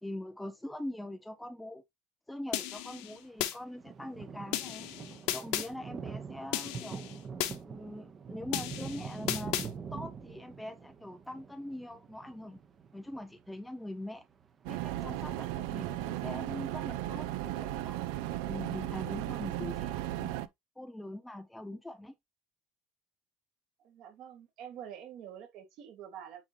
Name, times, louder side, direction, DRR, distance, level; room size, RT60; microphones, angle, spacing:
voice 1, 0.0-1.8 2.3-4.9 5.3-7.2 7.6-9.6 9.9-12.6 12.9-14.2 14.7-18.0 18.4-20.5 20.8-22.1, left 1 dB, 5° left, 0.4 m, -43 dB
sound 1, 2.5-3.6 4.5-5.7 6.5-7.6 8.5-9.7, left 14 dB, 65° left, 1.0 m, -35 dB
sound 2, 3.3-3.4 3.6-15.1 15.4-18.5, right 6 dB, 25° right, 0.9 m, -45 dB
sound 3, 14.7-20.5, right 14 dB, 70° right, 0.5 m, -36 dB
voice 2, 23.8-26.4, right 9 dB, 50° right, 1.9 m, -47 dB
8.9 x 3.8 x 2.9 m
cardioid pair, 155°, 0 cm